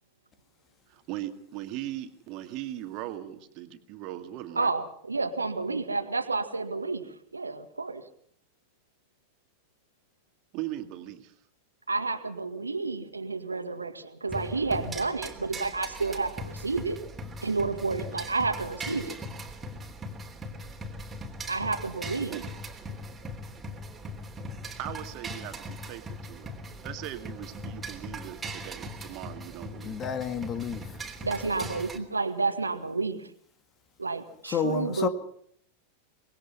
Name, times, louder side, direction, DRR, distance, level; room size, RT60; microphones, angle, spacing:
voice 1, 0.9-4.7 10.5-11.3 22.3-22.4 24.8-26.5 26.8-30.0, right 13 dB, 40° right, 2.1 m, -39 dB
voice 2, 4.6-7.0 7.3-8.0 11.9-17.0 17.4-19.2 21.5-22.4 31.2-33.3 34.0-35.1, right 3 dB, 80° right, 1.8 m, -30 dB
sound 1, 14.3-32.0, equal, 15° right, 3.2 m, -40 dB
voice 3, 29.8-30.8 34.5-35.1, left 7 dB, 25° left, 1.9 m, -30 dB
24.5 x 20.0 x 5.7 m
figure-of-eight pair, 90°, 0 cm